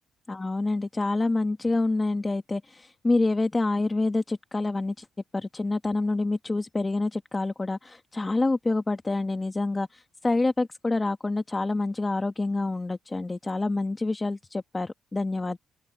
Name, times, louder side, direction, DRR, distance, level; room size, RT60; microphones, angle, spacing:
voice 1, 0.3-5.1 5.3-15.6, left 2 dB, 20° left, 1.3 m, -27 dB
open air
cardioid pair, 80°, 0 cm